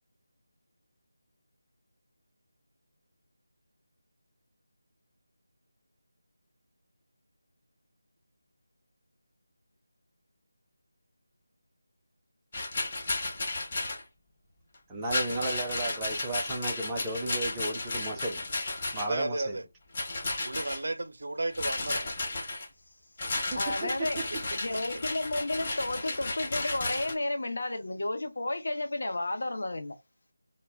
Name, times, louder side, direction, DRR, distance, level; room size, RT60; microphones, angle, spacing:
Rattle, 12.5-14.0 15.0-19.2 19.9-20.8 21.5-22.7 23.2-27.1, left 2 dB, 35° left, 0.8 m, -33 dB
voice 1, 14.9-18.4 18.9-19.6 23.5-23.9, right 2 dB, 10° right, 0.5 m, -34 dB
voice 2, 18.9-19.7 20.4-22.1 24.3-24.6, right 2 dB, 70° right, 0.4 m, -34 dB
voice 3, 23.5-24.2 24.5-30.0, left 2 dB, 70° left, 0.7 m, -32 dB
2.3 x 2.0 x 3.3 m
figure-of-eight pair, 165°, 0 cm